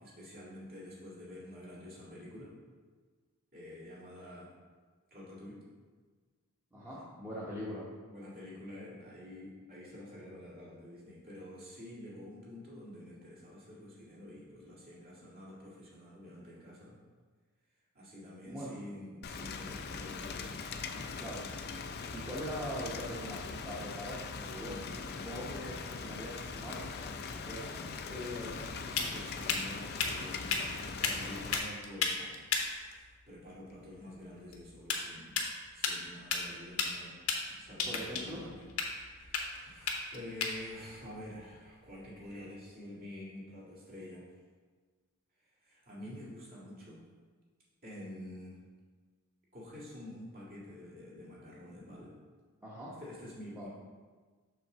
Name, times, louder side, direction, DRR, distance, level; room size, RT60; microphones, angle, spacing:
voice 1, 0.0-2.5 3.5-4.5 5.1-5.6 8.1-17.0 17.9-21.1 24.9-25.4 28.1-35.4 35.7-37.2 37.5-38.7 39.0-44.3 45.6-47.0 47.8-48.6 49.5-52.1 53.0-53.7, left 1 dB, 45° right, -7 dB, 2.1 m, -48 dB
voice 2, 6.7-7.9 18.5-18.8 21.2-21.4 22.1-24.8 25.1-28.0 37.8-38.4 52.6-52.9 53.4-53.7, equal, 10° right, -9 dB, 1.0 m, -42 dB
Rain, 19.2-31.6, left 4 dB, 50° left, 0.5 m, -41 dB
sound 1, 28.5-42.4, left 5 dB, 80° left, 0.9 m, -37 dB
5.9 x 3.8 x 6.0 m, 1.4 s
head